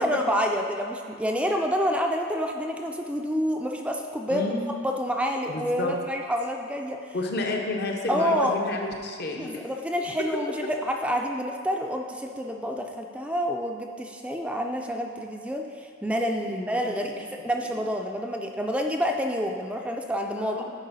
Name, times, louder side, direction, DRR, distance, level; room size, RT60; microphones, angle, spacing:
voice 1, 0.0-4.5 4.8-7.1 8.1-8.6 9.3-20.6, equal, 5° right, 2 dB, 0.4 m, -28 dB
voice 2, 4.3-4.7 5.5-5.9 7.1-9.5 16.4-17.2 20.4-20.7, left 2 dB, 60° left, 1 dB, 0.9 m, -31 dB
10.5 x 4.5 x 4.1 m, 2.2 s
head